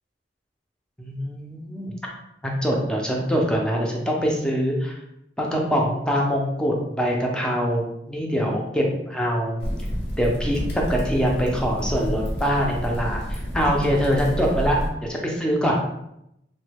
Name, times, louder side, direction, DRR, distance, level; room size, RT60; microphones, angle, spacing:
voice 1, 1.0-1.9 2.4-5.0 5.4-9.6 10.2-15.7, equal, 5° left, -1 dB, 0.5 m, -24 dB
sound 1, 9.6-14.9, equal, 65° left, 0.7 m, -29 dB
3.0 x 2.1 x 3.3 m, 0.82 s
head